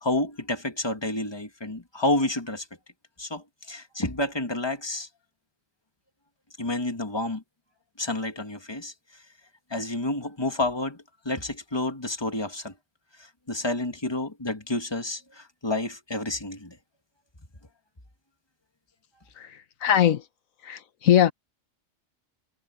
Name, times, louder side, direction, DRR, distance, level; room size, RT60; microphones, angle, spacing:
voice 1, 0.0-2.7 3.2-5.1 6.6-7.4 8.0-8.9 9.7-11.0 11.3-12.7 13.5-16.8, left 2 dB, 20° left, 2.0 m, -29 dB
voice 2, 19.8-20.2 20.7-21.3, left 10 dB, 85° left, 1.4 m, -20 dB
omnidirectional pair, 1.4 m